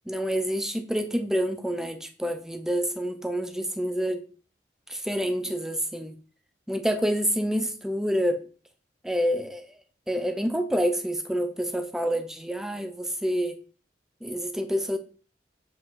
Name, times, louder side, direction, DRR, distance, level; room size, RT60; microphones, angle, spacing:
voice 1, 0.1-4.2 4.9-6.1 6.7-8.4 9.0-9.7 10.1-13.6 14.2-15.0, equal, 5° right, 0.6 m, -27 dB
7.6 x 5.1 x 3.9 m
head